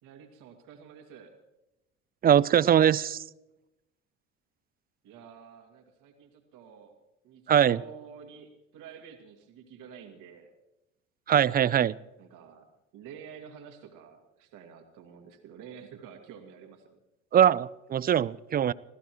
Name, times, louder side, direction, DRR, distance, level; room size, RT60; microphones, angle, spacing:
voice 1, 0.0-1.3 5.0-6.9 7.2-10.5 12.2-12.7 12.9-17.0, right 7 dB, 65° right, 3 dB, 2.3 m, -49 dB
voice 2, 2.2-3.2 7.5-7.8 11.3-11.9 17.3-18.7, right 9 dB, 30° right, 21 dB, 0.4 m, -22 dB
26.0 x 16.0 x 3.1 m, 0.96 s
hypercardioid pair, 65°, 34 cm